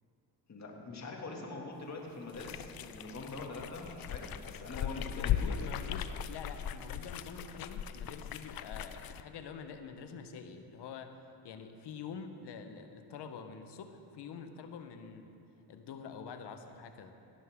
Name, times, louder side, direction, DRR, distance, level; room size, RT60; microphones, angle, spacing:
voice 1, 0.5-5.7, left 2 dB, 40° left, -1 dB, 2.4 m, -44 dB
sound 1, 2.3-9.2, left 9 dB, 55° left, 0.6 m, -38 dB
voice 2, 4.7-11.2 11.4-15.4 15.7-17.1, left 6 dB, 70° left, 7 dB, 1.2 m, -46 dB
17.5 x 12.0 x 3.7 m, 2.7 s
cardioid pair, 85°, 42 cm